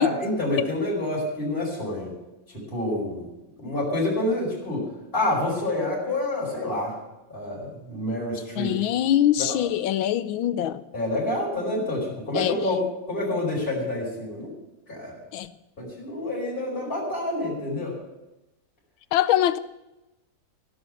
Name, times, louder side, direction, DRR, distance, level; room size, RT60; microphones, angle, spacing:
voice 1, 0.0-2.1 2.5-3.3 3.6-4.9 5.1-7.0 7.3-8.7 9.4-9.6 10.9-12.8 13.1-14.5 14.9-15.2 15.8-18.0, left 1 dB, 25° left, -5 dB, 5.4 m, -28 dB
voice 2, 8.6-10.8 12.3-12.5 15.3-15.5 19.1-19.6, left 12 dB, 85° left, 12 dB, 1.5 m, -23 dB
17.0 x 6.5 x 8.2 m, 0.97 s
omnidirectional pair, 2.1 m